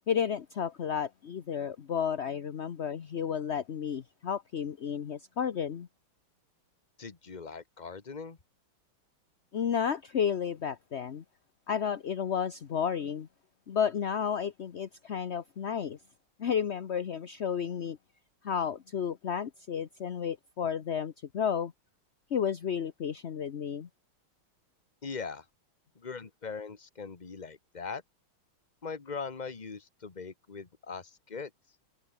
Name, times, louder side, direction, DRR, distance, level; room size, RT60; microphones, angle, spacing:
voice 1, 0.1-5.9 9.5-11.2 11.7-13.3 13.7-16.0 16.4-18.0 18.4-21.7 22.3-23.9, left 7 dB, 45° left, 0.9 m, -32 dB
voice 2, 7.0-8.4 25.0-25.4 25.9-28.0 28.8-31.5, left 5 dB, 25° left, 1.3 m, -40 dB
omnidirectional pair, 2.3 m